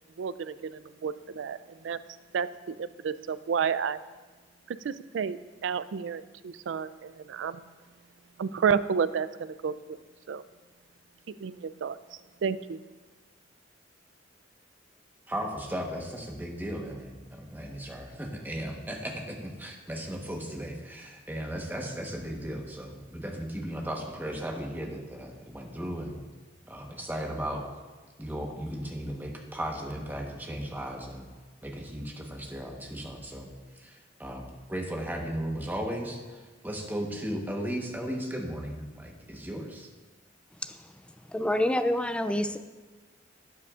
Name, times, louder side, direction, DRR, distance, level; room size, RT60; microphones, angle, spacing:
voice 1, 0.2-2.0 2.3-4.0 4.7-7.7 8.4-10.0 10.3-10.4 11.4-12.0 12.4-12.8, right 6 dB, 75° right, 15 dB, 0.4 m, -31 dB
voice 2, 15.3-26.2 26.6-27.7 28.2-31.2 31.6-33.5 33.7-39.9, equal, 10° right, 1 dB, 1.1 m, -36 dB
voice 3, 41.3-42.6, left 1 dB, 5° left, 9 dB, 0.4 m, -27 dB
12.0 x 9.3 x 2.4 m, 1.3 s
head